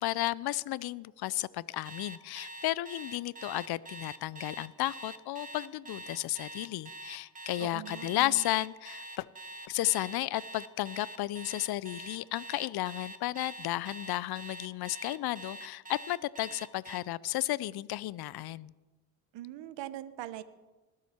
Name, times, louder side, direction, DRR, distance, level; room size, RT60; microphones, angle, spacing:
voice 1, 0.0-9.3 9.7-18.7, left 15 dB, 55° left, 22 dB, 0.5 m, -33 dB
Alarm, 1.9-17.0, right 2 dB, 20° right, 1.2 m, -45 dB
voice 2, 7.6-8.4 19.3-20.4, right 13 dB, 70° right, 14 dB, 1.0 m, -42 dB
20.5 x 7.6 x 4.4 m, 1.2 s
supercardioid pair, 60°, 45 cm